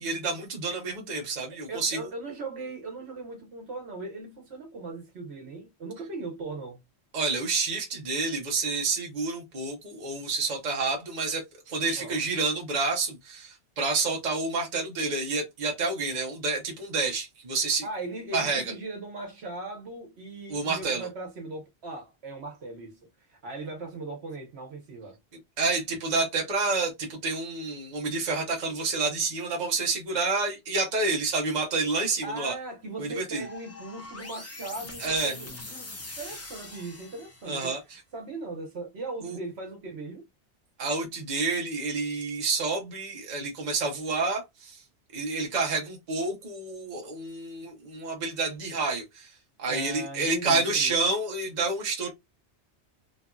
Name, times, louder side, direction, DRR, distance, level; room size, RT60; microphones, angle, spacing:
voice 1, 0.0-2.1 7.1-17.8 18.3-18.7 20.5-21.1 25.6-32.5 33.0-33.5 35.0-35.3 37.5-38.0 39.2-39.4 40.8-44.8 45.1-49.3 49.6-52.1, right 3 dB, 45° right, 0.9 m, -29 dB
voice 2, 1.5-6.8 12.0-12.2 17.8-23.0 23.3-25.2 32.2-35.5 36.2-37.7 38.1-40.2 49.7-50.9, right 2 dB, 70° right, 1.2 m, -38 dB
sound 1, 33.4-37.7, left 2 dB, 25° left, 0.3 m, -42 dB
2.9 x 2.5 x 2.2 m
omnidirectional pair, 1.2 m